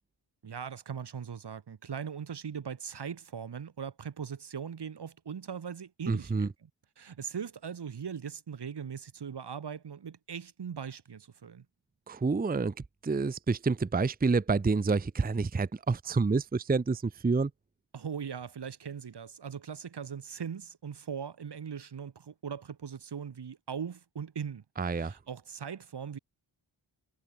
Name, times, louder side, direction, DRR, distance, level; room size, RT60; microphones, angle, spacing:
voice 1, 0.4-6.7 7.0-11.7 17.9-24.6 24.9-26.2, right 7 dB, 60° right, 1.0 m, -40 dB
voice 2, 6.1-6.5 12.1-12.7 13.0-17.5 24.8-25.1, right 4 dB, 20° right, 0.6 m, -28 dB
wide cardioid pair, 55°, 47 cm